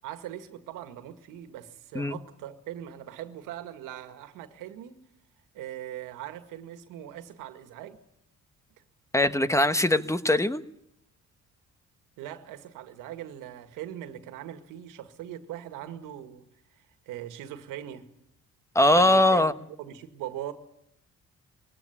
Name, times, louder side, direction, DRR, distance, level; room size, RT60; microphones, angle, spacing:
voice 1, 0.0-5.0 5.5-8.0 12.2-16.4 17.1-18.1 19.0-19.5 19.8-20.5, right 11 dB, 85° right, 2.1 m, -40 dB
voice 2, 9.1-10.6 18.7-19.5, left 1 dB, 10° left, 1.2 m, -21 dB
22.0 x 17.5 x 9.9 m
cardioid pair, 85°, 31 cm